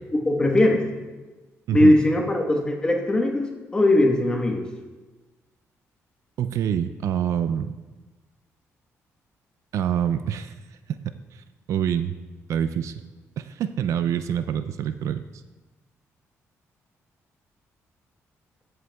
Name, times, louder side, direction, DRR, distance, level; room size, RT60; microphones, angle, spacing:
voice 1, 0.1-0.8 1.7-4.6, left 1 dB, 15° left, 1 dB, 1.1 m, -20 dB
voice 2, 6.4-7.7 9.7-10.5 11.3-12.2 12.5-13.0 13.4-15.2, right 9 dB, 70° right, 11 dB, 0.3 m, -26 dB
15.0 x 7.9 x 2.3 m, 1.2 s
cardioid pair, 140°, 5 cm